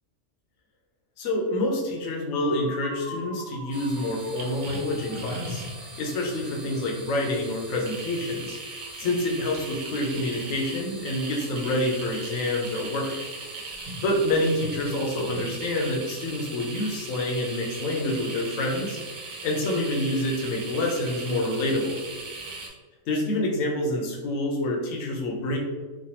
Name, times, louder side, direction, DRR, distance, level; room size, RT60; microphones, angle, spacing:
voice 1, 1.2-5.6 6.0-8.6 9.0-13.1 14.0-19.0 19.4-22.0 23.1-25.6, left 1 dB, 80° left, 0 dB, 1.0 m, -27 dB
sound 1, 2.3-6.2, left 4 dB, 40° left, 0.6 m, -41 dB
sound 2, 3.7-22.7, right 3 dB, 90° right, 1.1 m, -38 dB
3.2 x 2.2 x 2.8 m, 1.4 s
omnidirectional pair, 1.4 m